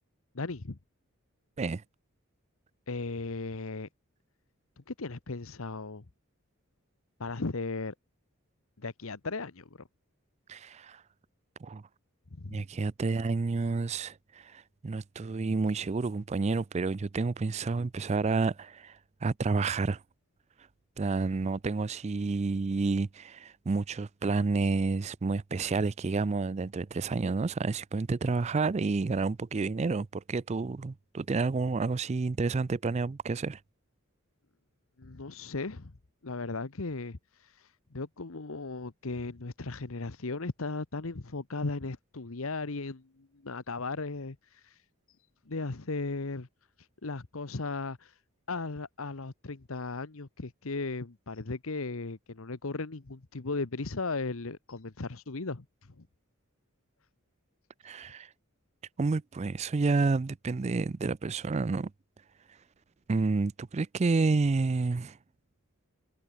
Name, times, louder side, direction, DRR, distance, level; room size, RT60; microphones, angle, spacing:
voice 1, 0.3-0.8 2.9-3.9 4.8-6.0 7.2-7.9 8.8-9.8 12.4-12.6 35.0-35.9 36.2-44.8 45.5-46.5 47.0-48.1 48.5-55.6 56.0-56.1, left 3 dB, 70° left, 1.1 m, -36 dB
voice 2, 10.5-11.0 11.6-11.8 12.5-20.0 21.0-33.6 57.8-58.3 59.0-61.9 63.1-65.2, right 3 dB, 30° right, 0.4 m, -30 dB
head